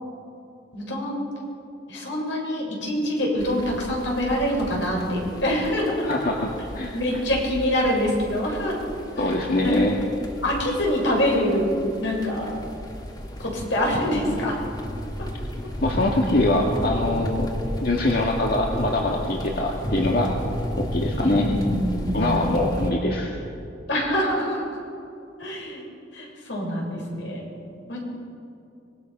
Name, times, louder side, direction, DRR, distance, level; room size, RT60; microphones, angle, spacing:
voice 1, 0.7-1.3 1.9-6.1 6.9-8.8 9.1-9.3 9.6-9.8 10.4-11.7 12.0-12.5 13.4-14.6 15.2-15.3 21.2-22.4 23.9-24.7 25.4-25.8 26.1-27.4 27.9-28.0, equal, 75° left, -2 dB, 7.4 m, -25 dB
sound 1, 3.4-22.9, equal, 20° left, 2.1 m, -33 dB
voice 2, 6.0-6.5 6.8-6.9 9.2-10.0 15.8-17.5 17.8-20.3 20.8-21.5 22.1-23.3, left 1 dB, 50° left, -1 dB, 2.0 m, -23 dB
25.0 x 22.0 x 6.2 m, 2.7 s
head